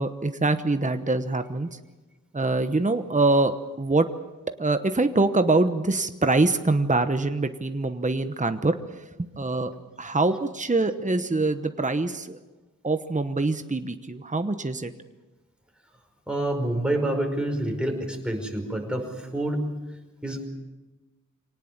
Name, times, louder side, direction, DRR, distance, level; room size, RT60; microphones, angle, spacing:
voice 1, 0.0-1.8 2.3-4.1 4.6-9.7 10.0-12.4 12.8-14.9, right 2 dB, 25° right, 8 dB, 1.0 m, -24 dB
voice 2, 16.3-19.7 20.2-20.5, right 1 dB, 5° right, 2 dB, 5.2 m, -27 dB
25.5 x 18.5 x 7.4 m, 1.1 s
wide cardioid pair, 70°, 32 cm